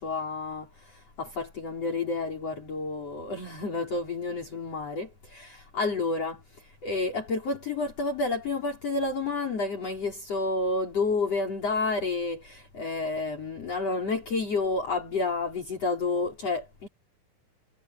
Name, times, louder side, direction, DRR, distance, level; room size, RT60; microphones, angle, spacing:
voice 1, 0.0-16.9, left 3 dB, 40° left, 5.5 m, -30 dB
omnidirectional pair, 4.4 m